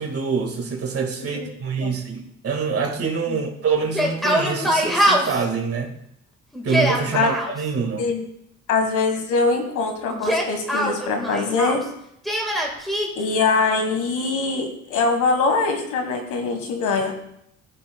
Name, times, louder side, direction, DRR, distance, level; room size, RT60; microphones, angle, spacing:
voice 1, 0.0-5.9 6.6-8.1, right 5 dB, 50° right, 3 dB, 1.6 m, -25 dB
Yell, 3.8-5.4 6.5-7.5 10.1-11.8 12.2-13.1, equal, ahead, 1.6 m, -22 dB
voice 2, 8.7-11.8 13.1-17.1, left 4 dB, 85° left, 4 dB, 1.4 m, -23 dB
14.0 x 5.5 x 2.2 m, 0.76 s
cardioid pair, 90°, 30 cm